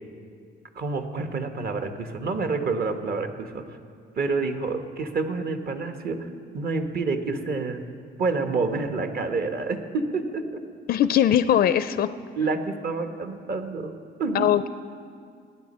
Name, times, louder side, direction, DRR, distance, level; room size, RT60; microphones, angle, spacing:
voice 1, 0.7-3.6 4.2-6.3 6.5-7.8 8.2-10.5 12.0-14.5, right 4 dB, 50° right, 7 dB, 1.2 m, -28 dB
voice 2, 10.9-12.1 14.3-14.7, left 10 dB, 50° left, 13 dB, 0.4 m, -20 dB
19.0 x 9.5 x 4.3 m, 2.2 s
cardioid pair, 90°, 20 cm